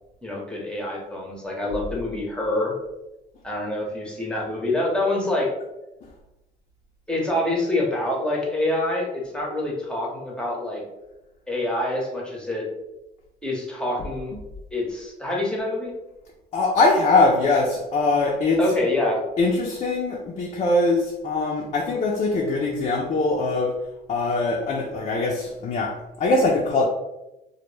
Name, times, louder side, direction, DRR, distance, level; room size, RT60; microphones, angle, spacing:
voice 1, 0.2-2.7 3.4-5.5 7.1-10.8 11.5-12.6 13.4-14.3 14.7-15.9 18.6-19.2, left 1 dB, 5° left, -3 dB, 0.7 m, -26 dB
voice 2, 16.5-18.6 19.4-23.8 24.1-26.9, left 2 dB, 40° left, -1 dB, 0.4 m, -22 dB
2.1 x 2.0 x 3.1 m, 0.95 s
cardioid pair, 110°, 17 cm